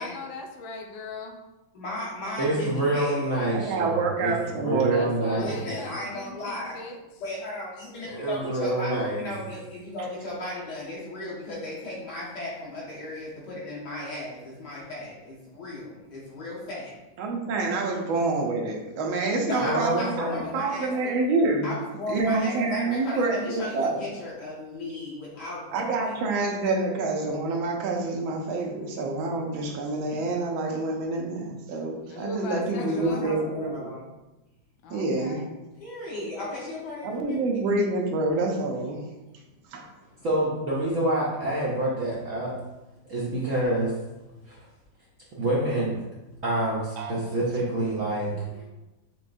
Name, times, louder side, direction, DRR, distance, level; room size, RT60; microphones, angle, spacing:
voice 1, 0.0-1.4 4.9-7.0 7.9-8.3 32.1-33.3 34.8-35.5, left 3 dB, 80° left, 4 dB, 1.4 m, -39 dB
voice 2, 1.7-3.3 5.4-6.8 7.2-8.9 9.2-16.9 19.5-21.1 21.6-26.2 32.7-34.0 35.8-37.4 40.0-40.1 48.4-48.7, left 1 dB, 60° left, -7 dB, 2.1 m, -36 dB
voice 3, 2.4-5.6 8.1-9.3 19.6-20.4 40.2-42.5 43.1-43.9 44.5-44.6 45.3-46.0 46.4-48.3, right 1 dB, 60° right, -5 dB, 0.9 m, -27 dB
voice 4, 3.5-5.5 17.2-21.7 22.1-24.0 25.7-34.0 34.9-35.4 37.0-39.0 39.7-39.9 47.0-47.3, right 3 dB, 85° right, 1 dB, 1.6 m, -27 dB
6.8 x 3.0 x 2.6 m, 1.0 s
omnidirectional pair, 2.2 m